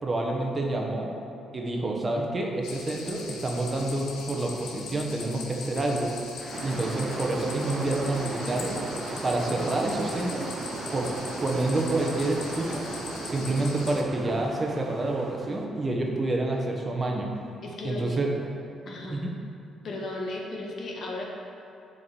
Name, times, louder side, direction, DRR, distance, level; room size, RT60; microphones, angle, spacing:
voice 1, 0.0-1.1 1.5-6.1 6.6-8.8 9.2-10.5 10.9-11.1 11.4-12.8 13.2-17.3 17.8-18.3 19.1-19.3, right 2 dB, 30° right, 0 dB, 1.3 m, -28 dB
sound 1, 2.6-14.0, left 4 dB, 85° left, 1.0 m, -41 dB
sound 2, 6.4-13.0, left 1 dB, 30° left, 1.1 m, -44 dB
sound 3, 6.5-15.7, right 3 dB, 50° right, 0.9 m, -37 dB
voice 2, 17.6-18.2 18.8-19.2 19.8-21.2, left 2 dB, 60° left, -1 dB, 1.5 m, -35 dB
7.0 x 5.3 x 7.0 m, 2.7 s
cardioid pair, 90°, 0 cm